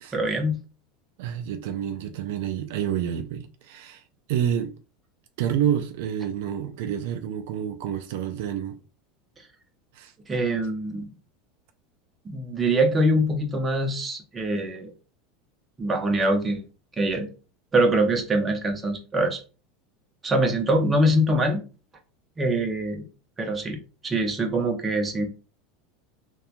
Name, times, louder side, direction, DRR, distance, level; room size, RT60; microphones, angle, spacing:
voice 1, 0.1-0.6 10.3-11.1 12.2-14.9 15.8-16.6 17.0-17.3 17.7-19.4 20.2-21.6 22.4-23.1 23.4-25.3, right 1 dB, 20° right, 0.7 m, -24 dB
voice 2, 1.2-4.0 4.3-4.7 5.4-8.8 9.9-10.1, right 9 dB, 75° right, 0.3 m, -28 dB
2.8 x 2.2 x 2.5 m
supercardioid pair, 125°, 0 cm